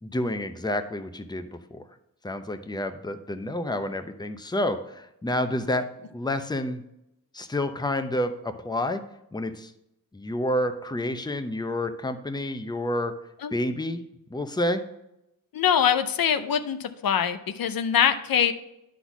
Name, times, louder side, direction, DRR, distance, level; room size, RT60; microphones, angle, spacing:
voice 1, 0.0-1.8 2.2-6.8 7.3-9.0 9.3-9.7 10.1-13.1 13.5-14.0 14.3-14.8, left 1 dB, 10° left, 8 dB, 0.7 m, -29 dB
voice 2, 15.5-18.5, left 8 dB, 75° left, 10 dB, 0.6 m, -23 dB
9.9 x 4.1 x 6.0 m, 0.87 s
cardioid pair, 60°, 35 cm